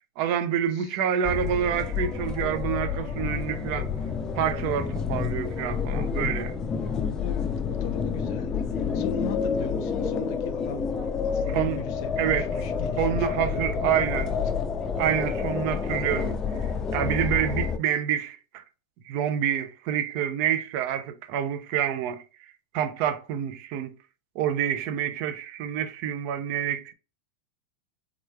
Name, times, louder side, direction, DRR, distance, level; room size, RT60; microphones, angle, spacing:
voice 1, 0.2-3.9 4.4-6.5 11.5-11.8 12.2-12.5 13.0-14.3 15.0-16.4 16.9-18.6 19.1-22.2 22.7-23.9 24.3-26.9, right 9 dB, 55° right, 0.6 m, -27 dB
sound 1, 1.2-17.8, left 6 dB, 25° left, 0.5 m, -29 dB
voice 2, 7.1-10.9 11.2-14.4, left 6 dB, 60° left, 0.7 m, -38 dB
3.5 x 3.1 x 2.2 m
hypercardioid pair, 120°, 3 cm